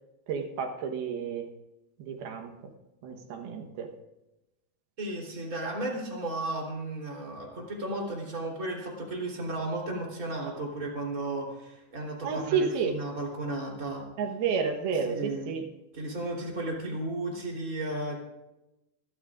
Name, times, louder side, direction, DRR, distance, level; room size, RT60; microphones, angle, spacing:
voice 1, 0.3-1.5 2.0-2.7 3.0-3.9 12.2-13.0 14.2-15.7, right 6 dB, 70° right, 4 dB, 2.7 m, -31 dB
voice 2, 5.0-14.0 15.1-15.4 15.9-18.2, right 2 dB, 20° right, -2 dB, 3.3 m, -34 dB
25.5 x 13.5 x 2.5 m, 0.95 s
omnidirectional pair, 5.2 m